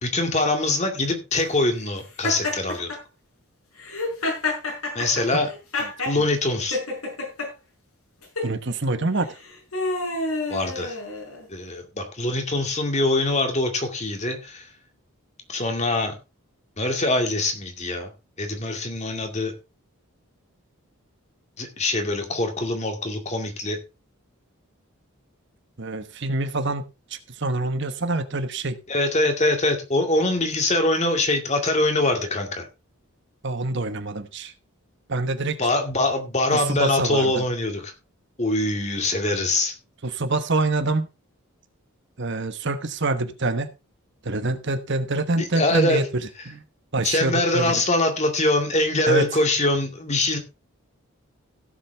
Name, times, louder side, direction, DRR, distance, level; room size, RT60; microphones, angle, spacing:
voice 1, 0.0-2.9 4.9-5.5 6.1-6.8 10.5-11.0 11.5-14.7 15.5-16.1 16.8-18.1 18.4-19.5 21.6-23.8 28.9-32.7 35.6-37.9 38.4-39.7 45.4-46.0 47.0-50.4, left 2 dB, 30° left, 2.2 m, -23 dB
Laughter, 2.2-3.0 3.8-6.2 6.7-7.5 8.2-8.5 9.2-11.5, left 2 dB, 85° left, 6.1 m, -28 dB
voice 2, 8.4-9.4 25.8-28.8 33.4-34.5 35.1-35.6 36.5-37.4 40.0-41.1 42.2-43.7 44.2-46.6 46.9-47.8 49.1-49.3, right 2 dB, 55° right, 1.1 m, -26 dB
16.5 x 7.6 x 3.4 m
head